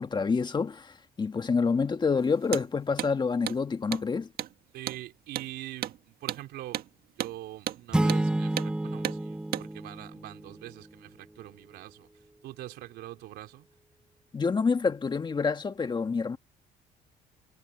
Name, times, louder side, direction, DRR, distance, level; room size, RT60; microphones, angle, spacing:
voice 1, 0.0-4.3 14.3-16.4, left 5 dB, 25° left, 1.6 m, -27 dB
Hammer, 2.4-2.7 3.0-3.1 3.5-3.6 3.9-4.1 4.4-4.5 4.9-5.0 5.4-5.5 5.8-6.0 6.3-6.4 6.7-6.9 7.2-7.3 7.7-7.8 8.1-8.2 8.6-8.7 9.0-9.2 9.5-9.7, right 11 dB, 65° right, 1.7 m, -33 dB
voice 2, 4.7-12.1 12.4-13.7, right 15 dB, 80° right, 4.3 m, -43 dB
sound 1, 7.9-10.7, right 1 dB, 5° right, 0.3 m, -29 dB
cardioid pair, 110°, 17 cm